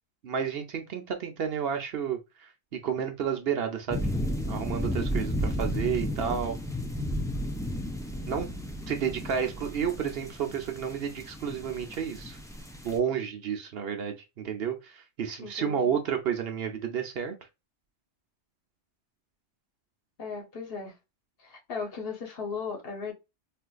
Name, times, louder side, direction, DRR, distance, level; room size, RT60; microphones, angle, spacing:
voice 1, 0.2-4.1 4.5-6.6 8.3-8.5 8.9-12.4 12.8-17.3, right 7 dB, 65° right, 0.9 m, -31 dB
sound 1, 3.9-13.0, equal, 5° left, 0.3 m, -33 dB
voice 2, 15.4-15.9 20.2-20.9 21.4-23.1, left 5 dB, 60° left, 1.1 m, -37 dB
4.2 x 2.5 x 2.3 m
omnidirectional pair, 1.1 m